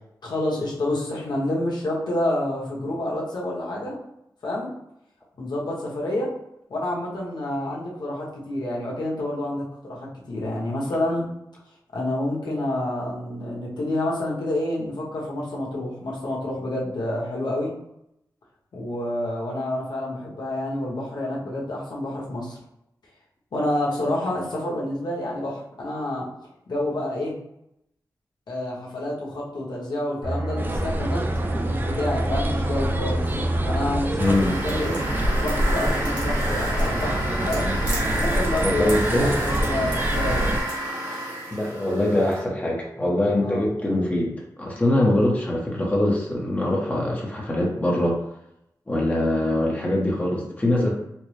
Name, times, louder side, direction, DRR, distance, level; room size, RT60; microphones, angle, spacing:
voice 1, 0.2-4.0 4.4-4.7 5.4-6.3 6.7-11.3 11.9-17.7 18.7-22.6 23.5-26.3 26.7-27.3 28.5-31.3 31.7-33.4 33.6-35.0 35.4-37.2 37.5-37.7 38.2-38.9 39.2-40.5 43.4-43.6, left 1 dB, 80° left, -4 dB, 1.1 m, -28 dB
sound 1, 30.2-35.6 35.9-36.2, right 1 dB, 55° right, 1.1 m, -29 dB
sound 2, 30.6-40.6, right 1 dB, 25° right, 0.4 m, -26 dB
voice 2, 34.2-34.5 38.6-39.3 41.5-48.2 48.9-50.9, left 1 dB, 20° left, -2 dB, 0.7 m, -23 dB
sound 3, 34.2-42.4, right 1 dB, 85° right, 1.4 m, -30 dB
4.3 x 2.0 x 3.1 m, 0.80 s
wide cardioid pair, 115°, 7 cm